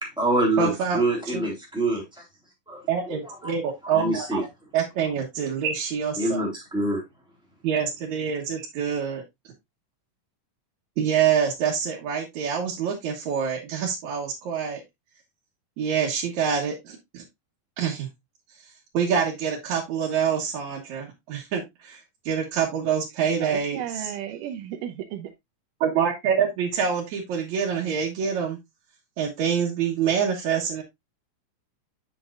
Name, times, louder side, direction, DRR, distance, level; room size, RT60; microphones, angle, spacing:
voice 1, 0.0-2.0 2.7-3.6 3.8-4.4 6.2-7.0, right 2 dB, ahead, 3.1 m, -26 dB
voice 2, 0.6-1.0 1.3-1.4 2.9-4.4 4.7-6.4 7.6-9.2 11.0-14.8 15.8-17.2 17.8-18.1 18.9-22.0 22.3-24.1 25.8-28.6 29.2-30.8, right 7 dB, 65° right, 2.4 m, -26 dB
voice 3, 23.3-25.3, right 10 dB, 90° right, 2.3 m, -34 dB
7.4 x 7.2 x 2.4 m
omnidirectional pair, 3.6 m